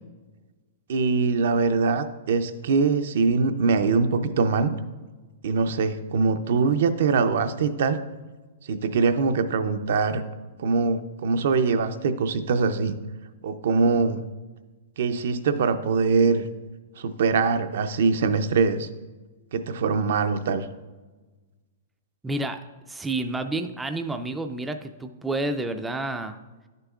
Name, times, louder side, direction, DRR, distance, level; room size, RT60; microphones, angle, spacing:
voice 1, 0.9-4.7 5.4-8.0 8.7-10.2 10.6-12.9 13.4-14.2 15.0-16.5 17.0-18.9 19.5-20.7, right 4 dB, 65° right, 9 dB, 0.5 m, -23 dB
voice 2, 22.2-22.6 22.9-26.4, right 2 dB, 5° right, 7 dB, 0.3 m, -29 dB
10.5 x 6.7 x 2.4 m, 1.2 s
hypercardioid pair, 150°, 0 cm